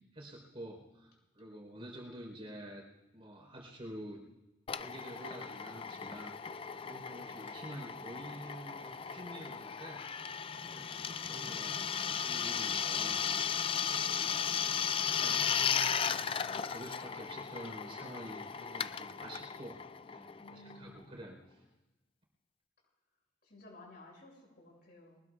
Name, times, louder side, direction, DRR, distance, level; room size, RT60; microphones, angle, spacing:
voice 1, 0.0-2.8 3.1-4.2 4.8-10.0 10.5-13.4 13.7-15.5 16.2-19.8 20.1-21.6, right 1 dB, 30° right, 1 dB, 4.2 m, -49 dB
Drill, 4.7-21.0, left 7 dB, 30° left, 0.4 m, -36 dB
voice 2, 20.4-21.1 23.4-25.2, left 1 dB, 55° left, -2 dB, 7.0 m, -56 dB
23.0 x 20.0 x 2.5 m, 1.1 s
head